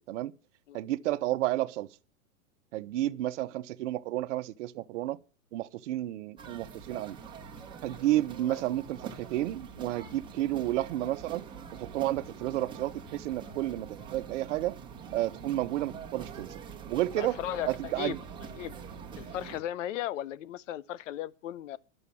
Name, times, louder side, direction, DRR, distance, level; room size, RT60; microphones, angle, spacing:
voice 1, 0.7-1.9 2.7-5.2 5.5-7.2 7.8-11.4 11.7-14.8 15.1-16.6 16.9-17.4 17.6-18.2, right 15 dB, 55° right, 0.8 m, -31 dB
sound 1, 6.4-19.6, right 6 dB, 10° right, 1.2 m, -45 dB
voice 2, 17.2-17.7 18.0-18.2 18.6-18.8 19.2-21.8, left 12 dB, 60° left, 0.6 m, -36 dB
11.0 x 7.0 x 8.3 m
hypercardioid pair, 145°, 43 cm